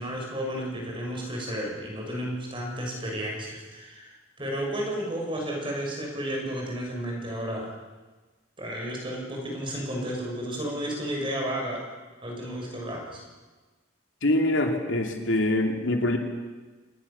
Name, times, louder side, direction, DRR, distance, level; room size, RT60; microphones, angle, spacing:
voice 1, 0.0-7.7 8.6-11.8 12.2-13.2, equal, 25° right, 0 dB, 6.7 m, -32 dB
voice 2, 14.2-16.2, left 1 dB, 70° left, 3 dB, 2.9 m, -24 dB
27.5 x 20.0 x 7.1 m, 1.3 s
head